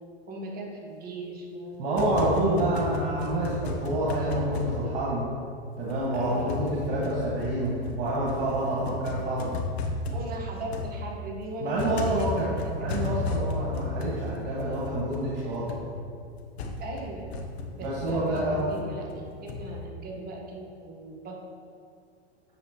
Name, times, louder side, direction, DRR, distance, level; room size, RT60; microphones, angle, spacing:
voice 1, 0.3-2.6 6.1-6.5 10.1-13.0 16.8-17.3 17.7-21.4, right 1 dB, 30° right, -1 dB, 1.3 m, -38 dB
sound 1, 1.7-5.5 5.9-19.8, left 3 dB, 75° left, 1.0 m, -34 dB
voice 2, 1.8-5.3 5.8-9.5 11.6-15.8 17.8-18.7, right 1 dB, 60° right, -6 dB, 1.7 m, -28 dB
7.8 x 6.6 x 3.0 m, 2.3 s
hypercardioid pair, 110°, 32 cm